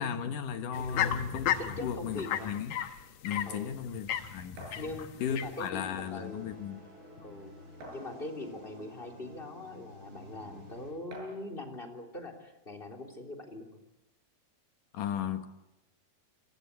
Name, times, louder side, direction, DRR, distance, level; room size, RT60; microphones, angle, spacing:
voice 1, 0.0-1.5 1.8-2.7 3.2-4.8 5.2-6.8 14.9-15.5, left 8 dB, 60° left, 2.7 m, -35 dB
sound 1, 0.7-5.7, left 10 dB, 80° left, 1.5 m, -34 dB
voice 2, 0.7-1.1 1.6-2.5 3.5-3.8 4.8-6.5 7.2-7.5 7.9-13.8, left 2 dB, 15° left, 3.1 m, -42 dB
sound 2, 4.6-4.9 6.0-6.1 6.5-6.6 7.8-8.4 9.3-9.4 11.1-11.5, right 1 dB, 75° right, 10.0 m, -47 dB
sound 3, 5.2-10.9, left 1 dB, 20° right, 6.4 m, -52 dB
29.0 x 23.5 x 8.5 m
omnidirectional pair, 4.8 m